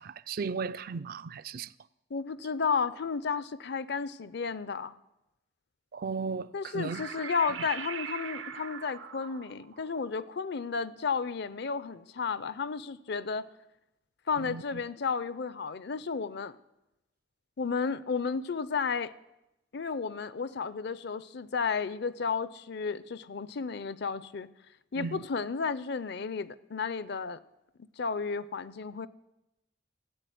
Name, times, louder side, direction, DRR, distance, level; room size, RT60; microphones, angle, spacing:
voice 1, 0.0-1.7 5.9-7.1 7.6-7.7 14.4-14.8 25.0-25.2, right 5 dB, 50° right, 0.4 m, -36 dB
voice 2, 2.1-4.9 6.5-13.5 14.3-16.6 17.6-19.1 19.7-24.5 24.9-27.4 27.8-29.1, left 5 dB, 60° left, 0.6 m, -33 dB
sound 1, 6.9-11.7, right 7 dB, 90° right, 1.0 m, -42 dB
14.5 x 8.4 x 9.2 m
head